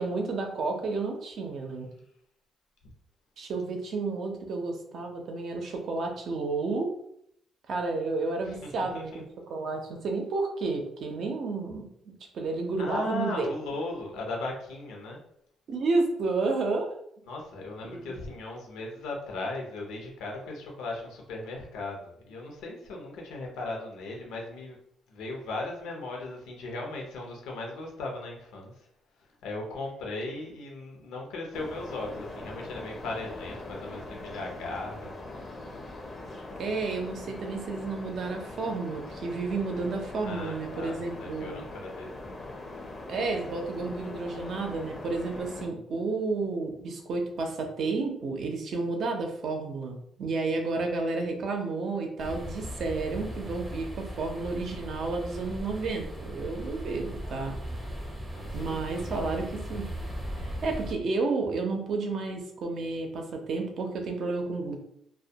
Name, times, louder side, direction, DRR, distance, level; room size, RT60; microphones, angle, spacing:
voice 1, 0.0-1.9 3.4-6.9 7.7-13.5 15.7-16.9 17.9-18.1 36.6-41.6 43.1-57.6 58.5-59.9 60.4-64.8, right 3 dB, 60° right, 3 dB, 0.5 m, -31 dB
voice 2, 12.8-15.2 17.2-24.8 25.1-28.7 29.4-35.1 40.2-42.4 58.3-59.3, left 2 dB, 90° left, 0 dB, 0.7 m, -37 dB
sound 1, 31.5-45.7, left 2 dB, 30° left, 0.5 m, -42 dB
sound 2, 52.2-60.9, equal, 15° right, 0.6 m, -38 dB
2.2 x 2.1 x 2.7 m, 0.71 s
cardioid pair, 105°, 0 cm